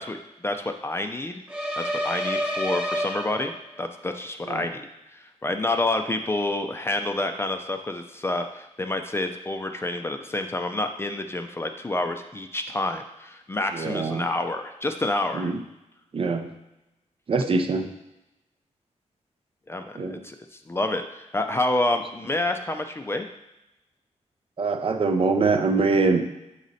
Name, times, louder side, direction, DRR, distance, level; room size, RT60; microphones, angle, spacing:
voice 1, 0.0-1.4 1.8-3.5 3.8-4.8 5.1-15.5 19.7-20.4 20.7-23.3, left 2 dB, 20° left, 6 dB, 0.4 m, -28 dB
sound 1, 1.5-3.8, equal, 10° right, 1.3 m, -28 dB
voice 2, 13.7-14.3 15.3-15.6 16.1-16.5 17.3-17.9 19.9-20.2 24.6-26.2, right 4 dB, 45° right, 6 dB, 0.5 m, -23 dB
6.3 x 4.0 x 4.1 m, 0.95 s
wide cardioid pair, 125°, 13 cm